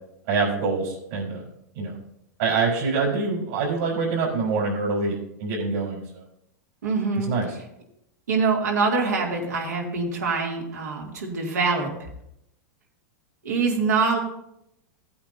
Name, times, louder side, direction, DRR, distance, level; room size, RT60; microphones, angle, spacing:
voice 1, 0.3-1.4 1.7-2.0 2.4-6.2 7.2-7.5, right 4 dB, 70° right, -6 dB, 4.1 m, -25 dB
voice 2, 6.8-7.3 8.3-11.9 13.4-14.2, right 4 dB, 90° right, -1 dB, 2.5 m, -24 dB
16.5 x 8.6 x 2.7 m, 0.80 s
hypercardioid pair, 115°, 9 cm